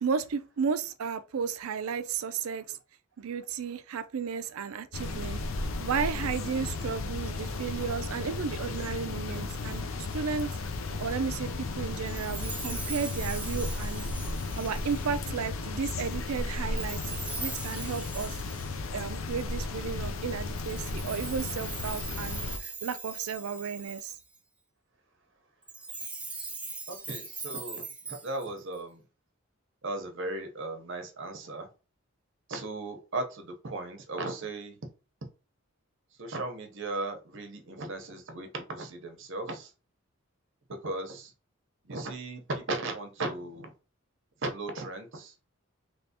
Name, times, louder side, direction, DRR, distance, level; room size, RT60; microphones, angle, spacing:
voice 1, 0.0-2.8 3.2-5.4 5.8-10.5 11.0-14.1 14.6-17.0 17.4-18.4 18.9-24.1, right 6 dB, 85° right, 0.4 m, -33 dB
sound 1, 4.9-22.6, left 3 dB, 70° left, 0.5 m, -34 dB
Chime, 12.1-15.4 16.8-19.6 20.5-24.4 25.6-28.8, right 3 dB, 5° right, 0.3 m, -41 dB
voice 2, 26.9-29.0 29.8-31.7 32.5-34.8 36.1-39.7 40.7-41.3 41.8-43.7 44.4-45.4, right 2 dB, 60° right, 0.9 m, -36 dB
3.3 x 3.0 x 2.8 m
head